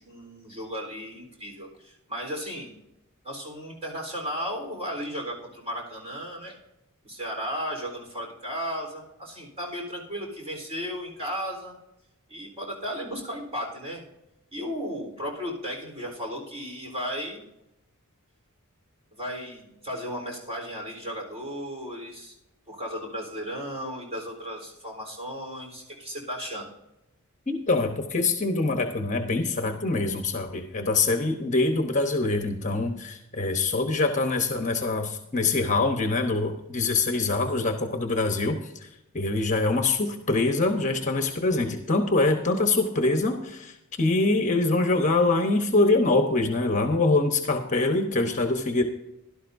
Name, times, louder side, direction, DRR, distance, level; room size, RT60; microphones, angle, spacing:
voice 1, 0.0-2.7 3.2-6.5 7.0-11.8 12.3-14.0 14.5-17.4 19.2-22.4 22.7-26.7, equal, 25° right, 0 dB, 3.8 m, -35 dB
voice 2, 27.5-38.9 39.1-48.8, left 3 dB, 35° left, 5 dB, 1.0 m, -24 dB
16.5 x 12.0 x 2.7 m, 0.90 s
head